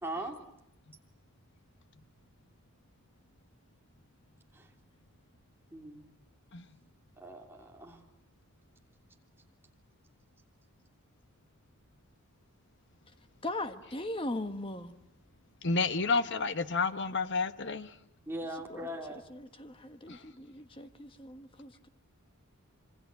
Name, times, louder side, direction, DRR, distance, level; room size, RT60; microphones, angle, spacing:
voice 1, 0.0-0.3 4.5-4.7 5.7-6.0 7.2-8.0 18.3-19.2, right 1 dB, 10° right, 3.1 m, -40 dB
voice 2, 13.4-14.9 18.7-21.9, left 1 dB, 25° left, 1.4 m, -39 dB
voice 3, 15.6-17.9 20.1-20.2, left 4 dB, 55° left, 1.2 m, -30 dB
27.0 x 25.0 x 8.3 m
head